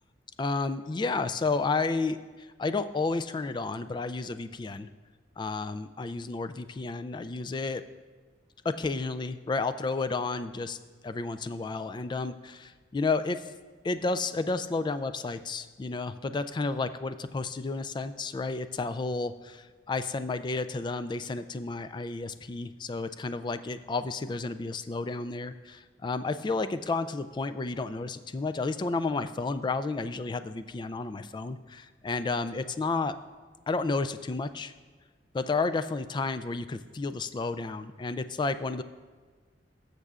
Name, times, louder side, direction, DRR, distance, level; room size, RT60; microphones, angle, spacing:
voice 1, 0.4-2.2 2.6-4.9 5.4-7.8 8.6-10.8 11.0-13.4 13.8-33.1 33.7-34.7 35.3-38.8, left 3 dB, 25° left, 11 dB, 0.3 m, -31 dB
17.5 x 6.7 x 2.4 m, 1.4 s
head